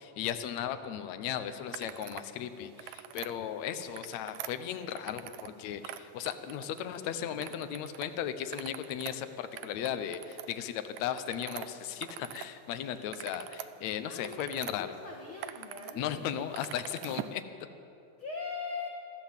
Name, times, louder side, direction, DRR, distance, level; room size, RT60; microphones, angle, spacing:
voice 1, 0.0-15.0 16.0-17.4, left 9 dB, 70° left, 10 dB, 1.8 m, -36 dB
sound 1, 1.7-2.3 2.6-3.3 3.8-5.5 5.8-7.0 7.4-8.1 8.4-12.5 12.8-14.7 15.2-15.9 16.2-17.4, right 13 dB, 75° right, 2.2 m, -44 dB
voice 2, 6.9-7.6 14.0-14.4 14.8-16.4 18.2-18.9, left 4 dB, 50° left, 0 dB, 1.8 m, -41 dB
26.5 x 13.5 x 7.4 m, 2.8 s
omnidirectional pair, 4.1 m